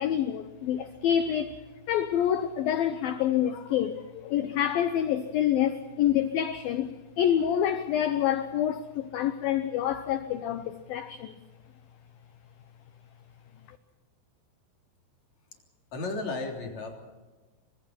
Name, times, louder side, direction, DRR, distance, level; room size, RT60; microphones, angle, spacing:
voice 1, 0.0-11.3 13.7-13.8, left 10 dB, 85° left, 2.1 m, -27 dB
voice 2, 15.9-17.0, left 3 dB, 40° left, 4.2 m, -33 dB
28.5 x 24.5 x 4.5 m
omnidirectional pair, 5.4 m